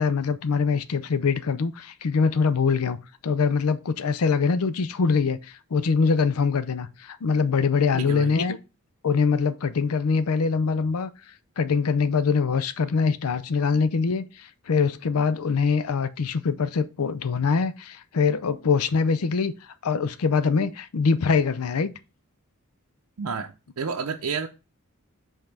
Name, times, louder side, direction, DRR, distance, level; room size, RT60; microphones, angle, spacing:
voice 1, 0.0-3.0 3.2-8.6 9.0-11.1 11.6-19.5 19.8-21.9, left 5 dB, 90° left, 0.5 m, -23 dB
voice 2, 7.9-8.4 23.2-24.5, right 5 dB, 85° right, 0.6 m, -30 dB
5.3 x 3.7 x 5.8 m
head